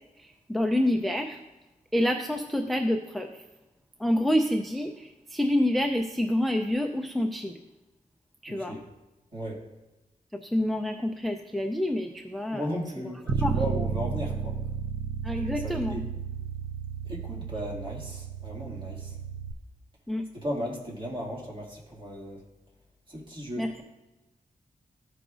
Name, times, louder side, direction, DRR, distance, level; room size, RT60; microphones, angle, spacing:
voice 1, 0.5-1.4 1.9-3.3 4.0-7.5 8.4-8.8 10.4-12.7 13.0-13.6 15.2-16.0 20.1-20.3 23.6-23.8, left 1 dB, ahead, 4 dB, 0.4 m, -27 dB
voice 2, 8.5-8.8 9.3-9.6 12.5-14.6 15.5-16.0 17.0-19.2 20.3-22.4 23.1-23.7, equal, 35° right, -3 dB, 2.0 m, -36 dB
Bass guitar, 13.3-19.5, right 6 dB, 55° right, 0.5 m, -32 dB
14.0 x 5.0 x 2.4 m, 1.0 s
wide cardioid pair, 155°, 14 cm